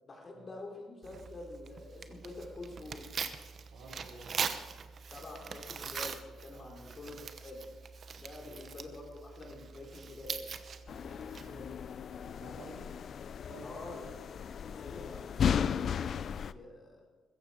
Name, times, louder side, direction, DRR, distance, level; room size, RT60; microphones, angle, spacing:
voice 1, 0.0-3.1 5.1-7.7 8.1-10.5 13.6-17.1, left 2 dB, 40° left, 0 dB, 4.1 m, -47 dB
Tearing, 1.0-11.8, right 6 dB, 50° right, 1.0 m, -42 dB
voice 2, 3.7-4.3 6.5-7.2 8.3-8.6 11.4-11.8 12.2-12.9 13.5-14.0, right 2 dB, 90° right, -3 dB, 5.5 m, -52 dB
sound 1, 10.9-16.5, left 8 dB, 55° left, 0.4 m, -35 dB
15.5 x 14.5 x 5.1 m, 1.4 s
cardioid pair, 90°, 0 cm